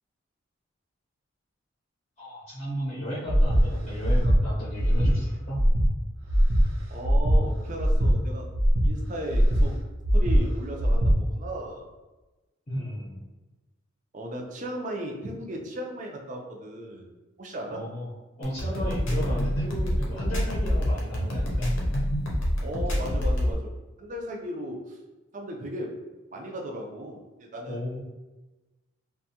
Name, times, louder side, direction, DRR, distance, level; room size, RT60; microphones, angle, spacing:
voice 1, 2.2-5.6 12.7-13.1 17.7-18.1 18.4-21.7 27.7-28.0, equal, 30° left, -7 dB, 0.7 m, -34 dB
Breathing, 3.3-3.6 4.0-4.4 4.8-5.1 5.5-5.9 6.3-6.6 7.0-7.4 7.8-8.1 8.5-8.9 9.3-9.6 10.0-10.4 10.8-11.1, equal, 85° right, 0.6 m, -20 dB
voice 2, 6.9-8.5 8.8-9.8 10.1-11.9 14.1-17.1 17.4-17.8 22.6-25.0 25.3-25.9 26.3-27.8, equal, 35° right, 1 dB, 0.4 m, -36 dB
sound 1, 18.4-23.5, equal, 70° left, 0.7 m, -26 dB
2.6 x 2.3 x 2.8 m, 1.1 s
head